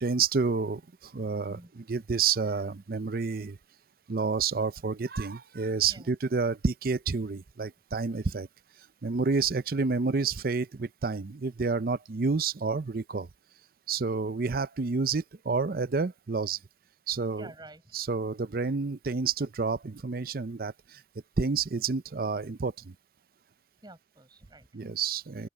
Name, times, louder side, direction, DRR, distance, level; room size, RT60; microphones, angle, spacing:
voice 1, 0.0-3.6 4.1-8.5 9.0-13.3 13.9-16.6 17.1-17.5 17.9-21.0 21.4-22.9 24.7-25.5, right 4 dB, 55° right, 0.6 m, -29 dB
voice 2, 1.1-1.7 5.9-6.1 17.3-18.0 23.8-24.7, right 1 dB, 25° right, 5.4 m, -49 dB
open air
head